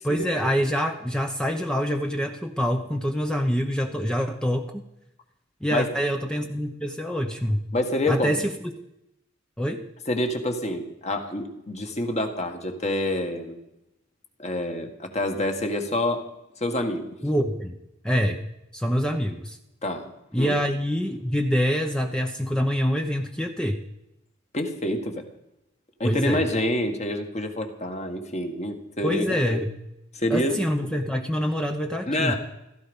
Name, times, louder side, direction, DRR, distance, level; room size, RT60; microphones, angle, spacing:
voice 1, 0.0-4.8 5.6-7.7 8.1-8.7 9.6-9.9 17.2-17.8 18.0-18.4 18.7-19.6 20.3-23.8 26.0-26.4 29.0-29.7 30.3-32.3, equal, 5° left, 4 dB, 0.9 m, -25 dB
voice 2, 7.7-8.4 10.1-13.6 14.4-16.3 16.6-17.1 19.8-20.1 20.4-20.6 24.5-25.2 26.0-29.4 30.1-30.6 32.1-32.4, left 1 dB, 35° left, 5 dB, 1.9 m, -27 dB
16.0 x 14.5 x 5.5 m, 0.85 s
head